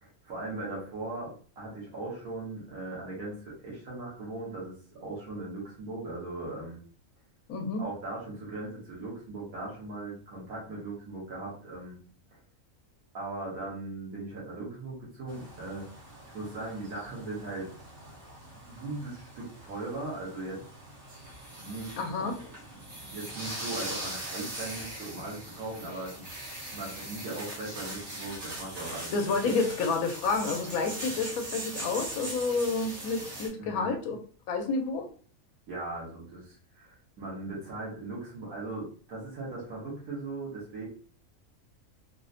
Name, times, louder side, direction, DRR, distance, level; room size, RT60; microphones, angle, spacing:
voice 1, 0.0-6.8 7.8-12.0 13.1-15.9 16.3-17.7 18.4-20.6 21.5-22.1 22.7-22.8 23.0-26.1 26.7-29.1 33.6-33.9 35.7-40.9, right 2 dB, 85° right, -5 dB, 1.6 m, -39 dB
voice 2, 7.5-7.8 22.0-22.4 29.1-34.2 34.5-35.1, left 4 dB, 90° left, 4 dB, 1.1 m, -29 dB
sound 1, 15.3-33.5, right 1 dB, 65° right, 1.5 m, -41 dB
3.9 x 2.1 x 2.5 m, 0.42 s
omnidirectional pair, 1.5 m